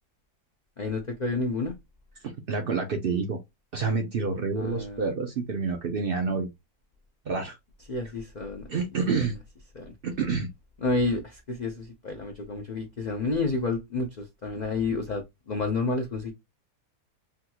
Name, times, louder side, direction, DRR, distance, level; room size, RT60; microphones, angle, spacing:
voice 1, 0.8-1.7 4.5-5.1 7.9-8.7 9.1-9.2 9.8-9.9 10.8-16.3, left 3 dB, 65° left, 0.4 m, -30 dB
voice 2, 2.2-3.4 3.7-6.5 7.3-7.6 8.7-9.3 10.0-10.5, right 4 dB, 60° right, 0.6 m, -28 dB
3.5 x 2.3 x 2.8 m
omnidirectional pair, 1.6 m